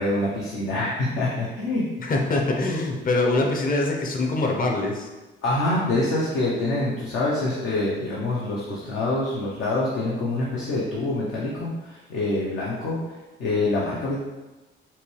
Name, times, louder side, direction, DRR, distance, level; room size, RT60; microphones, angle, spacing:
voice 1, 0.0-1.8 5.4-14.2, left 2 dB, 80° left, -6 dB, 0.9 m, -26 dB
voice 2, 2.0-5.1, left 2 dB, 45° left, 1 dB, 0.8 m, -24 dB
5.6 x 2.3 x 3.3 m, 1.2 s
cardioid pair, 90°, 20 cm